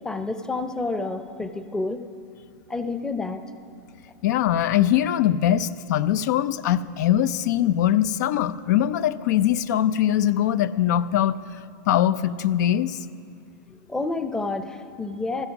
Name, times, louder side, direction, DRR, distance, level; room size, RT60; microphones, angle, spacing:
voice 1, 0.0-2.1 2.7-3.4 13.9-15.5, left 3 dB, 5° left, 9 dB, 0.7 m, -29 dB
voice 2, 4.2-11.4 11.9-13.0, left 11 dB, 70° left, 15 dB, 0.5 m, -22 dB
16.0 x 12.0 x 5.9 m, 2.5 s
supercardioid pair, 140°, 10 cm